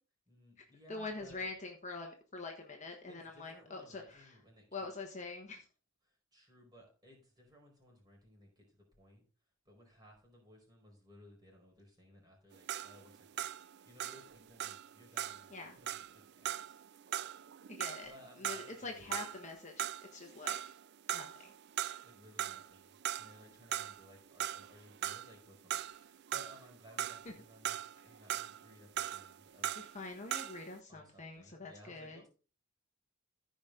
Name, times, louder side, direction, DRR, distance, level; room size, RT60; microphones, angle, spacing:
voice 1, 0.3-1.5 3.1-4.6 6.0-9.2 9.6-13.5 13.8-16.8 18.0-19.1 22.0-29.8 30.9-32.3, equal, 20° right, -1 dB, 4.6 m, -59 dB
voice 2, 0.9-4.4 4.7-5.7 15.5-15.8 17.7-18.1 18.4-20.8 21.1-21.5 27.2-27.3 29.7-32.2, left 3 dB, 35° left, 2 dB, 1.4 m, -45 dB
sound 1, 12.5-19.5 19.8-20.8 21.1-22.1 22.4-30.7, right 11 dB, 50° right, 0.4 m, -40 dB
15.0 x 5.3 x 3.8 m, 0.35 s
head